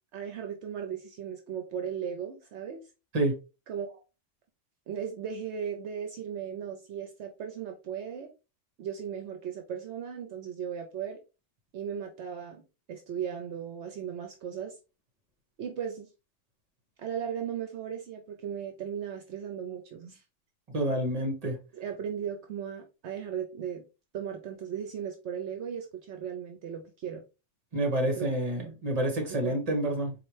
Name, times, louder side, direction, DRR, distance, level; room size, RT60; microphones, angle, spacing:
voice 1, 0.1-2.9 3.7-4.0 4.9-8.3 8.8-11.2 11.7-12.6 12.9-14.7 15.6-16.1 17.0-20.2 21.7-23.8 24.1-27.2 28.1-28.3 29.3-29.6, right 8 dB, 70° right, 0.9 m, -37 dB
voice 2, 20.7-21.6 27.7-30.1, right 1 dB, 35° right, 1.1 m, -28 dB
4.2 x 2.5 x 3.1 m
omnidirectional pair, 1.2 m